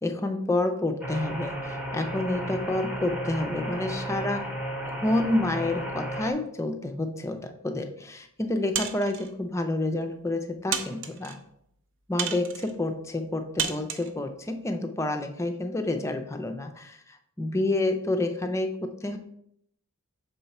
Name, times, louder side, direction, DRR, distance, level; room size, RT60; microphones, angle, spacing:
voice 1, 0.0-4.5 4.9-11.4 12.1-19.2, left 2 dB, 15° left, 6 dB, 0.5 m, -29 dB
sound 1, 1.0-6.3, right 1 dB, 5° right, 0.9 m, -34 dB
sound 2, 8.7-9.3 10.0-10.1 10.7-11.4 12.2-12.7 13.6-14.1, right 7 dB, 55° right, 0.6 m, -31 dB
6.8 x 3.9 x 4.2 m, 0.74 s
head